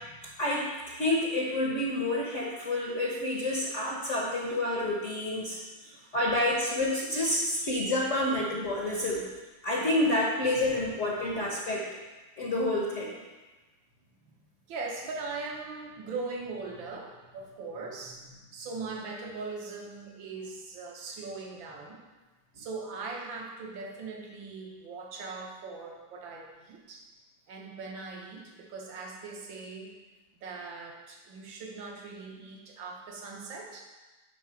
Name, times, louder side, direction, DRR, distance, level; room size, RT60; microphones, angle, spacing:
voice 1, 0.4-5.6 6.1-9.2 9.6-11.8 12.4-13.1, left 1 dB, 45° left, -3 dB, 1.2 m, -28 dB
voice 2, 14.7-22.0 22.5-27.0 27.5-30.0 30.4-33.8, right 3 dB, 65° right, 0 dB, 1.9 m, -40 dB
10.0 x 3.9 x 5.8 m, 1.2 s
omnidirectional pair, 2.4 m